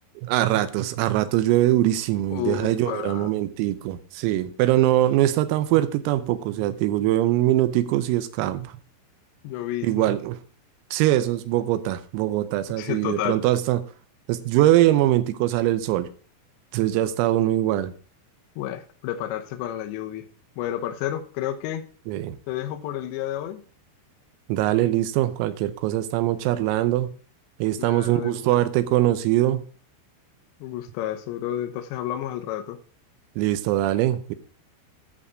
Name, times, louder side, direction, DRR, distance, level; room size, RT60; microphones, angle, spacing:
voice 1, 0.2-8.7 9.8-10.4 10.9-13.8 14.3-16.1 16.7-17.9 22.1-22.4 24.5-27.1 27.6-29.6 33.4-34.4, right 14 dB, 90° right, 11 dB, 3.5 m, -22 dB
voice 2, 2.3-3.3 9.4-10.1 12.8-13.4 18.6-20.3 20.6-21.8 22.5-23.6 27.8-28.6 30.6-32.8, left 12 dB, 75° left, 6 dB, 2.8 m, -31 dB
11.0 x 5.8 x 5.0 m, 0.40 s
omnidirectional pair, 6.0 m